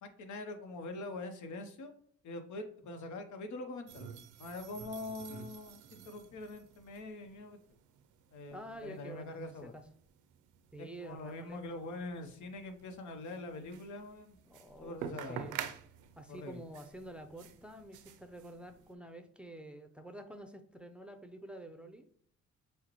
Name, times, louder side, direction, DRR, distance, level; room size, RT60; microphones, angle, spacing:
voice 1, 0.0-1.9 2.2-7.6 8.3-9.7 11.0-14.4 14.8-15.4 16.3-16.6, left 2 dB, 75° left, 7 dB, 0.9 m, -44 dB
sound 1, 3.9-18.9, right 8 dB, 90° right, 0.5 m, -49 dB
voice 2, 8.5-9.8 10.7-11.9 14.5-15.6 16.2-22.1, right 1 dB, 5° right, 7 dB, 0.5 m, -49 dB
6.4 x 2.2 x 3.0 m, 0.62 s
cardioid pair, 90°, 30 cm